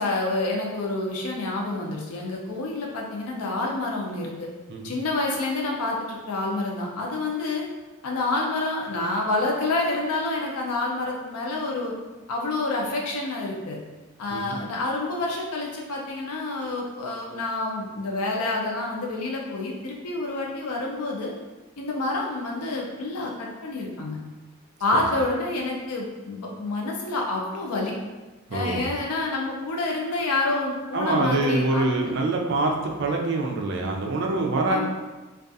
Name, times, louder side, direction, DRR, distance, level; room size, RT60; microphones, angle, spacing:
voice 1, 0.0-4.5 4.8-7.7 8.0-11.9 12.3-13.8 14.2-21.3 21.8-24.2 24.8-27.9 28.5-32.1 34.7-34.9, left 2 dB, 90° left, -1 dB, 0.5 m, -28 dB
voice 2, 28.5-28.9 30.9-34.9, right 2 dB, 55° right, 1 dB, 0.4 m, -25 dB
2.3 x 2.3 x 2.6 m, 1.2 s
head